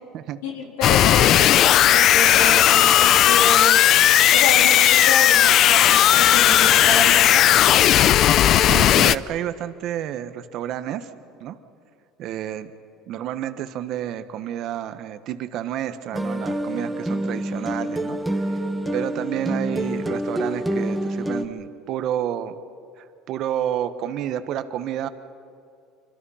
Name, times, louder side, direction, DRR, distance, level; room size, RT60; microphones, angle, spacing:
voice 1, 0.4-1.6 1.8-3.8 4.3-7.5, left 3 dB, 85° left, 2 dB, 3.7 m, -28 dB
sound 1, 0.8-9.2, left 11 dB, 55° left, 0.5 m, -15 dB
voice 2, 8.7-11.1 11.4-11.6 12.2-12.7 13.1-18.6 18.9-22.6 23.0-25.1, right 10 dB, 55° right, 10 dB, 1.3 m, -30 dB
sound 2, 16.1-21.5, right 1 dB, 5° right, 1.6 m, -27 dB
27.0 x 25.0 x 5.8 m, 2.5 s
supercardioid pair, 105°, 0 cm